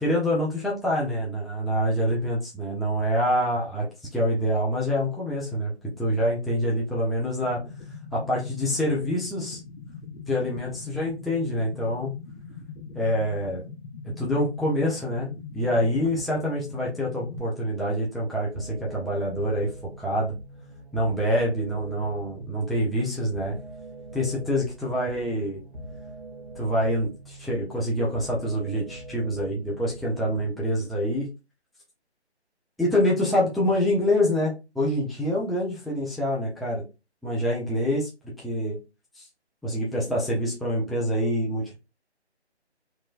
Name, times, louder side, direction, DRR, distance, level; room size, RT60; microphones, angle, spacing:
voice 1, 0.0-3.9 4.1-7.6 8.1-9.6 10.3-12.1 12.9-13.6 14.0-20.4 20.9-23.6 24.1-25.6 26.6-31.3 32.8-36.8 37.2-38.1 38.4-38.8 39.2-39.3 39.6-41.8, equal, ahead, -5 dB, 0.4 m, -26 dB
sound 1, 7.4-17.4, left 5 dB, 55° left, 0.7 m, -42 dB
sound 2, 18.5-30.5, right 1 dB, 45° right, 0.8 m, -43 dB
2.9 x 2.1 x 2.3 m, 0.27 s
figure-of-eight pair, 170°, 34 cm